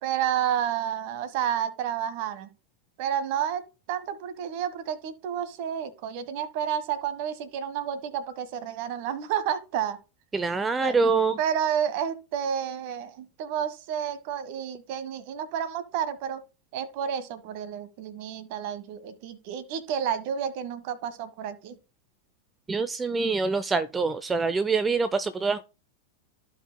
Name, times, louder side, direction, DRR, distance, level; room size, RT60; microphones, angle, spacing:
voice 1, 0.0-2.5 3.0-3.6 3.9-10.0 10.8-10.9 11.4-16.4 16.7-21.7, right 9 dB, 45° right, 1.3 m, -30 dB
voice 2, 10.3-11.4 22.7-25.6, right 4 dB, 15° right, 0.5 m, -25 dB
15.0 x 5.4 x 2.2 m
figure-of-eight pair, 90°, 0 cm